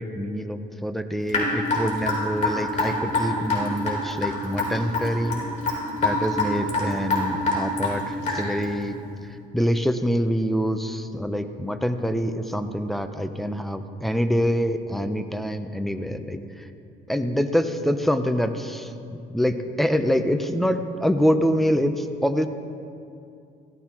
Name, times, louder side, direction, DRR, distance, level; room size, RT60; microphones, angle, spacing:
voice 1, 0.0-5.4 6.0-16.7 17.1-22.5, equal, ahead, 8 dB, 0.7 m, -25 dB
Raindrop / Drip, 1.3-8.6, left 2 dB, 45° left, 3.7 m, -25 dB
16.5 x 14.0 x 3.0 m, 2.5 s
cardioid pair, 110°, 17 cm